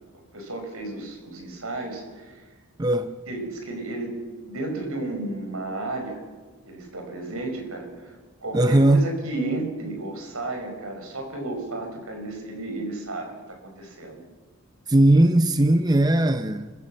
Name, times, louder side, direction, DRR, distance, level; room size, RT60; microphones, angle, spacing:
voice 1, 0.3-2.4 3.3-6.2 6.7-8.1 8.4-14.2, right 2 dB, 75° right, 5.1 m, -33 dB
voice 2, 2.8-3.2 8.5-9.1 14.9-16.7, right 1 dB, 20° right, 0.6 m, -18 dB
29.0 x 15.5 x 7.3 m
head